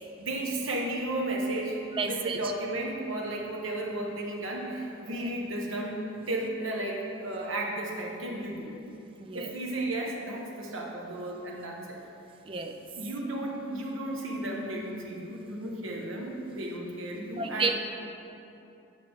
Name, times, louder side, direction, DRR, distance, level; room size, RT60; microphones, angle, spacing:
voice 1, 0.2-8.8 9.3-12.0 13.0-17.7, right 1 dB, 75° right, -1 dB, 1.1 m, -34 dB
voice 2, 2.0-2.4 9.2-9.5 12.5-12.7 17.4-17.8, right 4 dB, 25° right, 5 dB, 0.4 m, -30 dB
9.1 x 5.8 x 3.5 m, 2.8 s
head